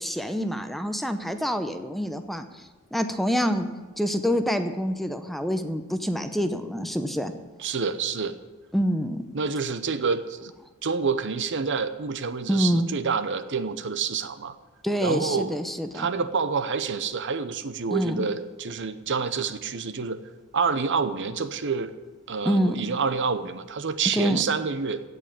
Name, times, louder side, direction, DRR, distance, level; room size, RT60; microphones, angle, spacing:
voice 1, 0.0-3.7 4.0-7.3 8.7-9.2 12.5-12.9 14.8-16.1 17.9-18.2 22.4-22.8 24.1-24.4, equal, ahead, 8 dB, 0.7 m, -26 dB
voice 2, 7.6-8.3 9.3-10.5 10.8-14.6 15.0-15.6 15.9-20.2 20.5-22.0 22.3-25.0, right 5 dB, 60° right, 12 dB, 0.8 m, -28 dB
16.0 x 5.5 x 9.8 m, 1.3 s
head